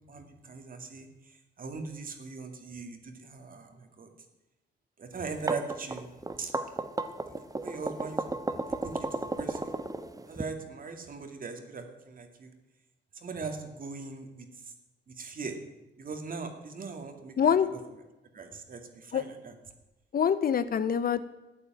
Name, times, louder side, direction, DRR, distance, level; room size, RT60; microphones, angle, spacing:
voice 1, 0.1-4.1 5.0-6.1 6.4-6.5 7.4-8.2 8.8-9.7 10.3-12.5 13.1-14.7 15.1-15.6 16.0-17.5 18.3-19.5, right 4 dB, 45° right, 6 dB, 2.4 m, -40 dB
sound 1, 5.2-10.4, right 2 dB, 20° right, 1.2 m, -33 dB
voice 2, 17.4-17.7 19.1-19.2 20.1-21.2, left 7 dB, 50° left, 13 dB, 0.9 m, -25 dB
12.5 x 8.7 x 9.0 m, 1.0 s
cardioid pair, 90°, 20 cm